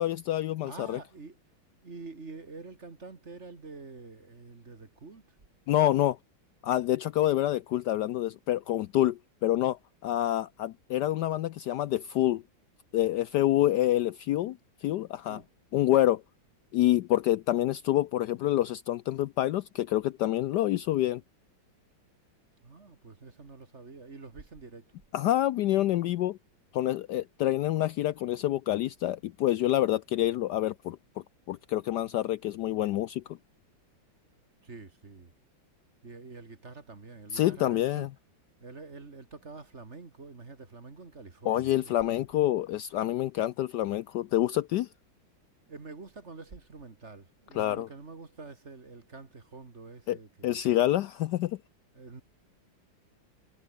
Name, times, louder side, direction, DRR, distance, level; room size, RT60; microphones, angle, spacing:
voice 1, 0.0-1.0 5.7-6.2 6.6-12.4 12.9-15.4 15.7-16.2 16.7-21.2 25.1-26.4 26.7-31.0 31.5-33.4 37.3-38.1 41.4-44.9 47.6-47.9 50.1-50.2 50.4-51.6, left 14 dB, 75° left, 1.1 m, -27 dB
voice 2, 0.6-1.4 1.8-5.3 15.3-15.5 22.6-24.9 34.6-35.3 36.0-38.1 38.6-42.2 45.7-50.6 51.9-52.2, right 3 dB, 35° right, 2.5 m, -47 dB
omnidirectional pair, 2.1 m